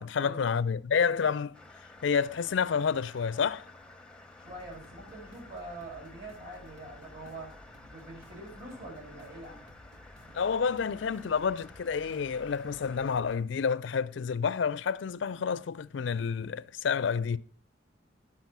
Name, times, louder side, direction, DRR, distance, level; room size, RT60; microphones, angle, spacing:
voice 1, 0.0-1.6 2.0-3.7 10.3-17.4, left 6 dB, 70° left, 0.4 m, -29 dB
sound 1, 1.5-13.2, left 2 dB, 5° left, 0.6 m, -52 dB
voice 2, 4.4-7.5 7.8-9.6, right 2 dB, 50° right, 6.5 m, -44 dB
sound 2, 4.4-13.4, equal, 75° right, 1.5 m, -55 dB
11.5 x 5.9 x 6.0 m
head